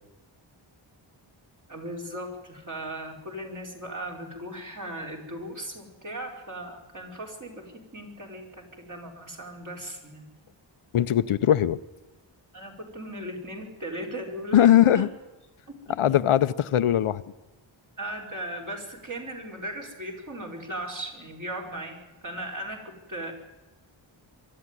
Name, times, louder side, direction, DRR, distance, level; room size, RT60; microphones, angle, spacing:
voice 1, 1.7-10.3 12.5-15.1 15.9-16.0 18.0-23.3, right 1 dB, 40° right, 0 dB, 4.8 m, -37 dB
voice 2, 10.9-11.8 14.5-15.1 16.0-17.2, left 11 dB, 85° left, 13 dB, 0.8 m, -20 dB
24.0 x 13.0 x 9.8 m, 1.1 s
wide cardioid pair, 120°, 49 cm